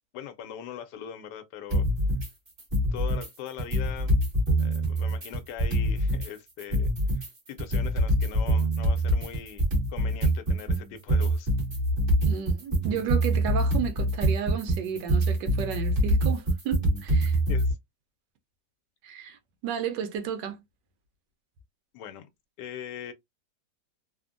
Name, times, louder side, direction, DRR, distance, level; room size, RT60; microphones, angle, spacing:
voice 1, 0.1-1.8 2.9-4.2 4.6-11.5 17.5-17.8 21.9-22.3 22.6-23.1, left 9 dB, 75° left, 1.2 m, -41 dB
sound 1, 1.7-2.3 2.6-3.3 3.6-6.3 6.6-17.7, right 1 dB, 35° right, 1.2 m, -25 dB
voice 2, 12.2-17.4 19.0-20.6, right 7 dB, 85° right, 1.3 m, -33 dB
3.4 x 2.1 x 2.4 m
omnidirectional pair, 1.9 m